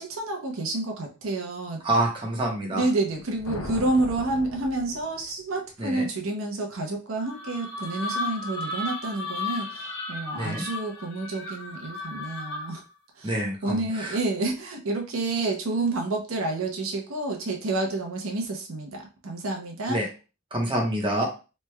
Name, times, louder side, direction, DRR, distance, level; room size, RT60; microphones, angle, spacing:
voice 1, 0.0-1.8 2.7-12.8 13.2-13.3 13.6-20.0, right 2 dB, 80° right, 2 dB, 0.7 m, -29 dB
voice 2, 1.8-2.9 5.8-6.1 10.4-10.6 13.2-14.2 19.9-20.1 20.5-21.2, right 1 dB, 25° right, -1 dB, 0.8 m, -27 dB
sound 1, 3.0-5.5, left 2 dB, 75° left, 0.6 m, -39 dB
sound 2, 7.2-12.9, left 2 dB, 55° left, 1.2 m, -34 dB
3.1 x 2.2 x 3.2 m, 0.32 s
head